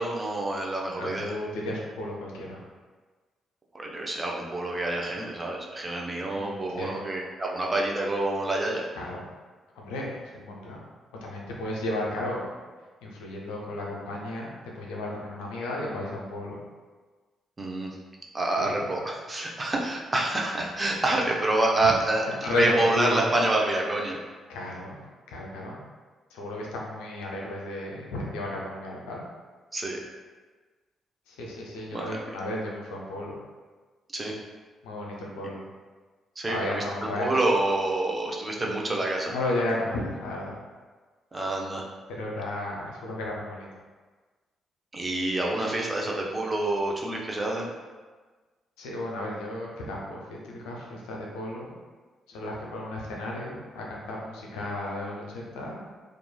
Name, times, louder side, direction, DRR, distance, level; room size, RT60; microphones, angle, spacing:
voice 1, 0.0-1.3 3.7-8.8 17.6-17.9 18.3-24.2 29.7-30.0 31.9-32.2 34.1-34.3 36.4-36.8 37.2-39.3 41.3-41.8 44.9-47.7, right 2 dB, 30° right, -1 dB, 0.5 m, -27 dB
voice 2, 1.0-2.6 6.3-6.9 8.9-9.3 9.8-10.8 11.2-12.4 13.0-16.6 18.6-18.7 21.8-21.9 22.4-23.2 24.5-25.0 25.3-25.8 26.3-29.2 31.3-33.4 34.8-35.6 36.5-37.4 38.7-39.0 39.3-40.6 42.1-43.7 48.8-51.7 52.3-55.8, left 1 dB, 75° left, -3 dB, 0.4 m, -34 dB
3.0 x 2.3 x 2.2 m, 1.4 s
hypercardioid pair, 40°, 0 cm